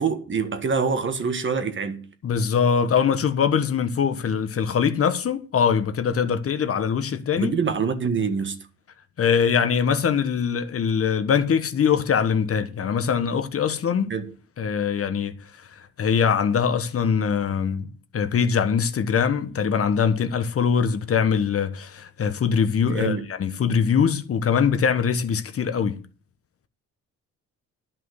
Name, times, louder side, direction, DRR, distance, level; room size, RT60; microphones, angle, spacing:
voice 1, 0.0-2.1 7.4-8.7 14.1-14.3 22.8-23.3, right 5 dB, 40° right, 1.6 m, -25 dB
voice 2, 2.2-7.5 9.2-14.1 14.6-15.3 16.0-26.0, left 7 dB, 50° left, 1.2 m, -22 dB
10.5 x 5.7 x 8.0 m
cardioid pair, 90°, 30 cm